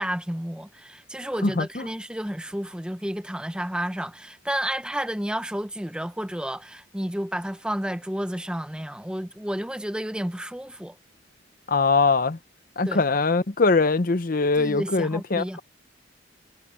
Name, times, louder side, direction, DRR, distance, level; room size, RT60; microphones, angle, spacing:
voice 1, 0.0-11.0 12.8-13.0 14.6-15.6, equal, 5° right, 0.7 m, -31 dB
voice 2, 1.4-1.8 11.7-12.4 12.8-15.6, left 3 dB, 45° left, 0.7 m, -22 dB
head